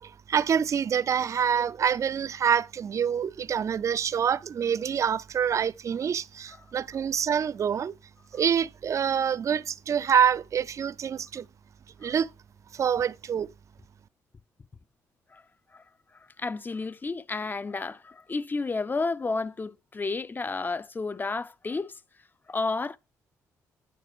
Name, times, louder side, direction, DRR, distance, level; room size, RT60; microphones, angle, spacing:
voice 1, 0.0-7.9 8.3-11.5 12.0-12.3 12.7-13.5, right 8 dB, 45° right, 0.4 m, -26 dB
voice 2, 16.4-22.0 22.5-23.0, left 3 dB, 30° left, 0.5 m, -31 dB
9.2 x 4.1 x 6.0 m
supercardioid pair, 65°, 7 cm